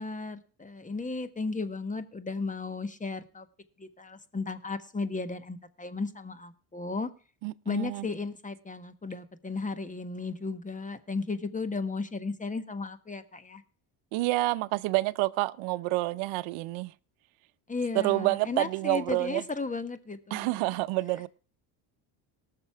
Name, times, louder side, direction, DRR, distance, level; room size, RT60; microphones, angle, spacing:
voice 1, 0.0-3.5 3.8-7.1 7.6-13.6 17.7-20.6, left 3 dB, 15° left, 1.5 m, -35 dB
voice 2, 7.4-8.1 14.1-16.9 17.9-19.4 20.3-21.3, right 20 dB, 80° right, 0.8 m, -28 dB
18.5 x 6.8 x 4.5 m
supercardioid pair, 90°, 47 cm